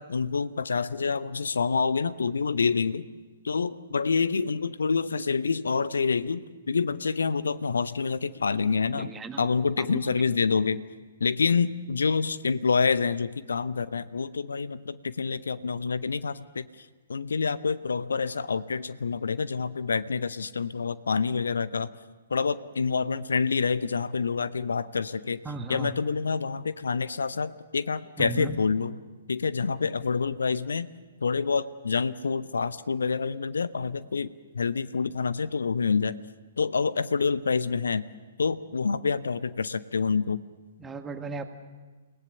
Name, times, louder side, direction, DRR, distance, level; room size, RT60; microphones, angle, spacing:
voice 1, 0.0-3.1 3.4-9.1 9.4-10.8 11.2-21.9 22.3-25.4 25.7-29.0 29.3-30.9 31.2-34.3 34.5-36.2 36.6-38.0 38.4-40.4, left 5 dB, 65° left, 16 dB, 0.7 m, -27 dB
voice 2, 9.0-9.5 9.8-10.0 25.4-26.1 28.2-28.6 40.8-41.4, right 3 dB, 10° right, 7 dB, 1.6 m, -36 dB
29.5 x 18.0 x 6.9 m, 1.3 s
figure-of-eight pair, 120°, 0 cm